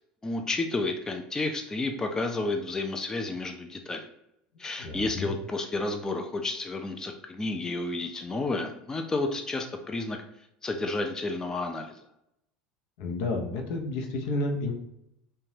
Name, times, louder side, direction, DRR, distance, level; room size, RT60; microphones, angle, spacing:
voice 1, 0.2-4.1 4.6-10.2 10.6-11.9, left 2 dB, 15° left, 4 dB, 0.3 m, -31 dB
voice 2, 4.8-5.3 13.0-14.7, left 2 dB, 70° left, 2 dB, 0.6 m, -31 dB
2.7 x 2.2 x 3.1 m, 0.80 s
hypercardioid pair, 90°, 4 cm